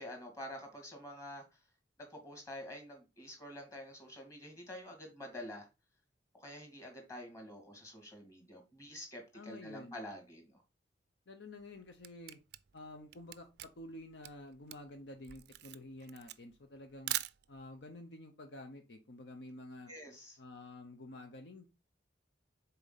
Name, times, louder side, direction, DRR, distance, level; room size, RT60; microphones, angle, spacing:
voice 1, 0.0-1.4 2.0-5.7 6.3-10.6 19.9-20.4, left 1 dB, 15° left, 2 dB, 2.5 m, -48 dB
voice 2, 9.3-10.0 11.3-12.4 12.7-17.1 17.5-19.9 20.4-21.7, left 1 dB, 65° left, 5 dB, 0.8 m, -50 dB
Camera, 11.6-17.8, right 15 dB, 60° right, 0.4 m, -43 dB
6.8 x 4.3 x 4.1 m, 0.27 s
head